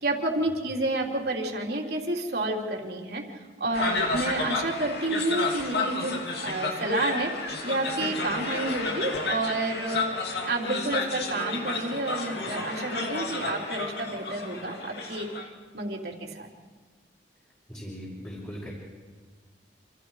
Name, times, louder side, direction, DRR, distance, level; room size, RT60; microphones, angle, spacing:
voice 1, 0.0-3.2 3.6-10.1 10.4-15.3 15.7-16.5, right 2 dB, 60° right, 0 dB, 3.5 m, -30 dB
sound 1, 3.7-15.4, left 3 dB, 60° left, 2.8 m, -31 dB
voice 2, 17.7-18.7, equal, 15° left, -6 dB, 5.8 m, -39 dB
28.0 x 28.0 x 4.9 m, 1.5 s
head